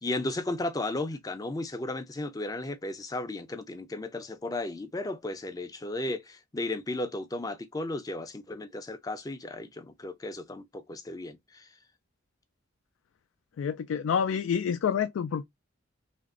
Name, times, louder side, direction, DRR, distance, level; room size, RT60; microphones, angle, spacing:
voice 1, 0.0-11.7, left 2 dB, 20° left, 0.4 m, -34 dB
voice 2, 13.6-15.4, left 7 dB, 85° left, 0.3 m, -28 dB
2.9 x 2.5 x 2.3 m
head